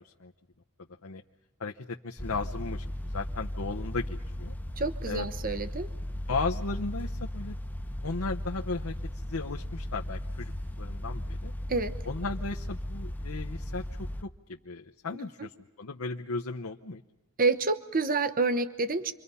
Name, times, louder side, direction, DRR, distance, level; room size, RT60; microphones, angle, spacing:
voice 1, 1.6-2.8 3.1-4.5 5.0-5.3 6.3-7.6 8.0-8.9 9.3-10.5 10.8-11.5 12.1-13.8 14.2-15.5 15.8-17.0, left 3 dB, 70° left, 3 dB, 0.9 m, -35 dB
sound 1, 2.2-14.2, left 1 dB, 10° left, 0.9 m, -36 dB
voice 2, 4.8-5.9 11.7-12.0 15.2-15.5 17.4-19.1, right 3 dB, 40° right, 10 dB, 1.0 m, -28 dB
28.5 x 24.5 x 5.6 m, 1.1 s
head